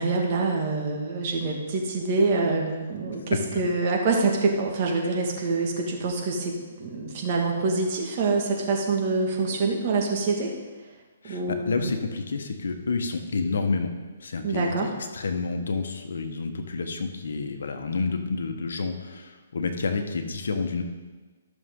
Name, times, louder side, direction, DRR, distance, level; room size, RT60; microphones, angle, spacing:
voice 1, 0.0-10.5 11.2-11.9 14.4-14.9, right 3 dB, 40° right, 0 dB, 1.9 m, -26 dB
voice 2, 11.2-13.9 14.2-20.8, left 4 dB, 75° left, 6 dB, 1.2 m, -29 dB
14.0 x 6.4 x 3.8 m, 1.3 s
hypercardioid pair, 155°, 0 cm